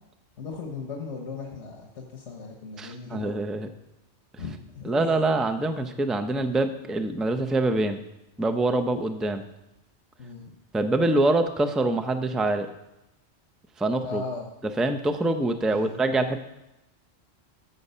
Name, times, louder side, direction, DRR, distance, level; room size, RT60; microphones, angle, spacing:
voice 1, 0.4-3.3 4.4-5.0 10.2-10.6 14.0-14.5 15.7-16.0, left 4 dB, 90° left, 1 dB, 1.5 m, -37 dB
voice 2, 2.8-3.7 4.8-8.0 8.4-9.4 10.7-12.7 13.8-14.2 14.6-16.4, right 2 dB, ahead, 8 dB, 0.4 m, -25 dB
13.5 x 7.3 x 5.6 m, 0.93 s
omnidirectional pair, 1.2 m